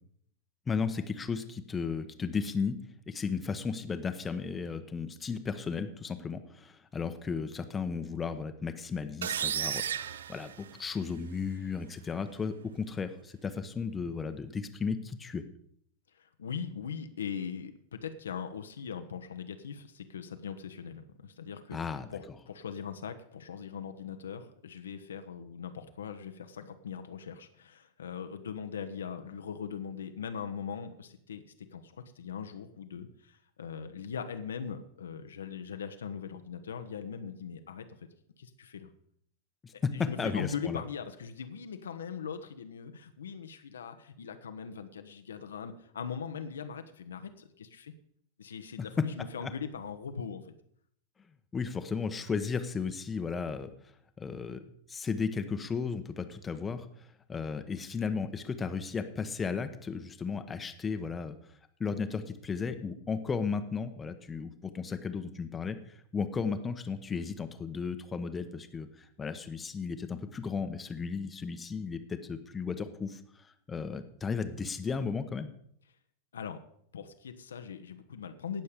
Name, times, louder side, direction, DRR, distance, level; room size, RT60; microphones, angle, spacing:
voice 1, 0.7-2.8 3.1-15.4 21.7-22.1 39.6-40.8 48.8-48.9 49.4-49.5 51.5-53.7 54.2-54.6 54.9-61.3 61.8-75.5, left 5 dB, 15° left, 8 dB, 1.0 m, -35 dB
sound 1, 9.2-11.2, right 9 dB, 65° right, 0.4 m, -34 dB
voice 2, 16.1-21.8 22.1-38.1 38.4-38.9 39.7-47.9 48.4-50.5 76.3-76.6 76.9-78.6, left 7 dB, 65° left, 8 dB, 1.0 m, -40 dB
18.0 x 6.9 x 5.1 m, 0.65 s
figure-of-eight pair, 90°, 0 cm